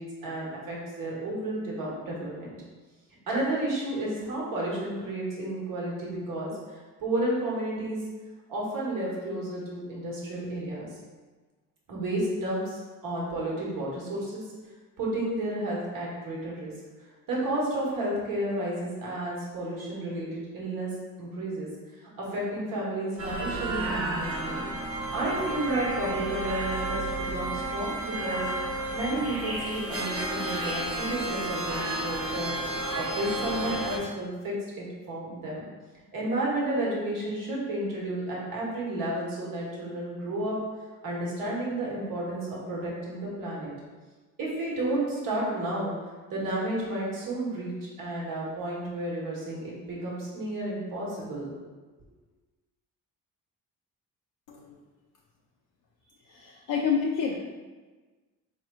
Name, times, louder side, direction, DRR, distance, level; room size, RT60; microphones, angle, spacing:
voice 1, 0.0-2.5 3.3-8.0 8.5-11.0 11.9-14.4 15.0-16.7 17.3-20.9 21.2-24.7 25.1-32.6 32.9-35.6 36.1-40.6 41.0-43.7 44.4-45.9 46.3-51.5, right 1 dB, 65° right, -5 dB, 1.3 m, -32 dB
sound 1, 23.2-34.0, right 1 dB, 40° right, 0.8 m, -32 dB
voice 2, 56.3-57.4, left 6 dB, 65° left, -2 dB, 0.5 m, -28 dB
3.8 x 3.2 x 2.3 m, 1.3 s
cardioid pair, 90°, 35 cm